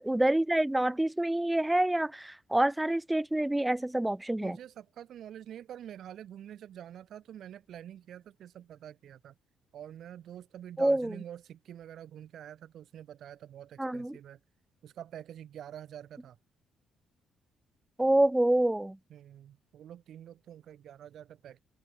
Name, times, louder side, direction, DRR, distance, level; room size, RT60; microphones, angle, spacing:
voice 1, 0.1-4.6 10.8-11.1 13.8-14.2 18.0-19.0, right 1 dB, 10° right, 0.6 m, -27 dB
voice 2, 4.4-9.3 9.7-14.4 14.8-16.4 19.1-21.6, right 10 dB, 70° right, 1.0 m, -47 dB
cardioid pair, 90°, 0 cm